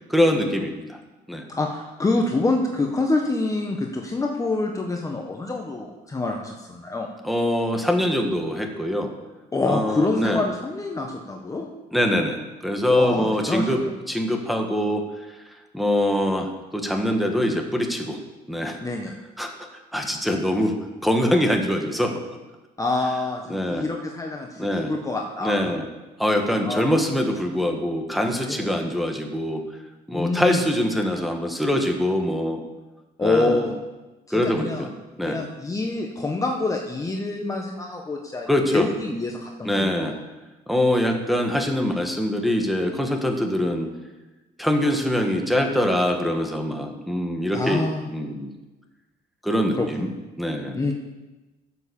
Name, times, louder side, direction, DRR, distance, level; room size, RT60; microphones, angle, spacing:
voice 1, 0.1-1.0 1.3-1.4 7.2-9.1 9.7-10.4 11.9-13.8 14.1-15.0 15.7-18.2 18.5-18.8 19.4-19.5 19.9-20.8 21.0-22.2 23.5-23.8 24.6-24.9 25.4-25.8 26.2-29.6 30.1-32.6 33.2-33.7 34.3-34.9 35.2-35.4 38.5-38.9 39.6-40.1 40.7-43.9 44.6-48.5 49.4-50.1 50.4-50.9, left 1 dB, ahead, 2 dB, 1.7 m, -23 dB
voice 2, 1.5-7.1 9.5-11.7 12.9-13.9 18.8-19.1 22.8-25.5 26.6-27.0 28.4-28.8 30.1-30.6 33.2-33.7 34.3-34.9 35.2-40.1 47.5-48.0 49.7-50.1 50.8-50.9, left 2 dB, 20° left, 1 dB, 1.2 m, -26 dB
10.5 x 7.5 x 7.1 m, 1.1 s
cardioid pair, 110°, 17 cm